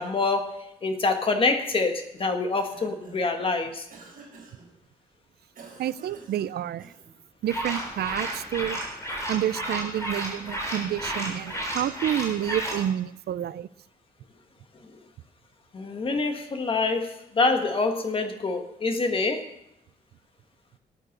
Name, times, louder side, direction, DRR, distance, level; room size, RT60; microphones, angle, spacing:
voice 1, 0.0-3.9 15.7-19.5, left 3 dB, 35° left, 6 dB, 1.6 m, -26 dB
Cough, 2.4-3.4 3.9-4.7 5.5-7.2, right 4 dB, 60° right, 4.7 m, -49 dB
voice 2, 5.8-6.9 7.4-8.8 9.3-13.7, right 11 dB, 85° right, 17 dB, 0.5 m, -29 dB
sound 1, 7.5-12.8, right 1 dB, 20° left, 4.0 m, -32 dB
17.0 x 9.1 x 6.6 m, 0.81 s
wide cardioid pair, 175°, 16 cm